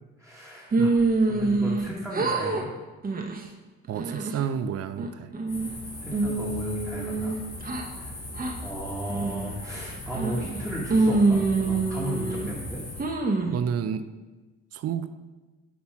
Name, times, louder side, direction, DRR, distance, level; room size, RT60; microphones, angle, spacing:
voice 1, 0.2-0.9 1.3-2.7 6.0-7.4 7.9-8.2 8.6-12.8, equal, 5° left, -6 dB, 1.3 m, -35 dB
sound 1, 0.7-1.9 2.1-2.6 3.0-3.4 3.9-4.5 5.0-5.7 6.1-7.9 8.4-8.5 9.1-9.5 10.1-10.6 10.9-12.5 13.0-13.6, right 3 dB, 30° right, 0.8 m, -25 dB
voice 2, 3.9-5.3 13.5-14.1 14.7-15.1, right 8 dB, 55° right, 12 dB, 0.4 m, -30 dB
sound 2, 5.5-13.0, left 1 dB, 90° left, 2.0 m, -39 dB
7.3 x 4.2 x 4.3 m, 1.2 s
cardioid pair, 90°, 30 cm